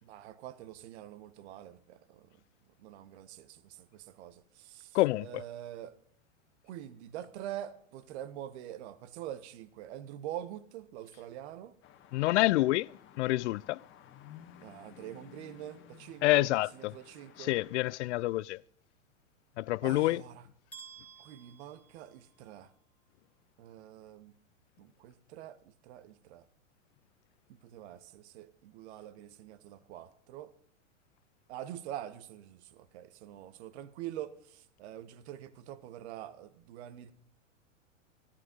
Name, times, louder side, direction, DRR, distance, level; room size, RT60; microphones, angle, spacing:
voice 1, 0.0-2.3 2.8-5.9 6.6-11.7 14.6-17.5 19.8-20.5 21.2-22.7 23.6-24.3 24.8-25.6 25.8-26.4 27.5-30.5 31.5-37.1, right 12 dB, 55° right, 1.3 m, -45 dB
voice 2, 4.9-5.4 12.1-12.9 13.2-13.8 16.2-16.9 17.4-18.6 19.6-20.2, left 18 dB, 65° left, 0.5 m, -27 dB
sound 1, 11.8-17.9, left 10 dB, 30° left, 1.5 m, -55 dB
sound 2, 20.7-22.7, right 6 dB, 5° left, 2.0 m, -53 dB
14.0 x 12.0 x 5.3 m
hypercardioid pair, 115°, 39 cm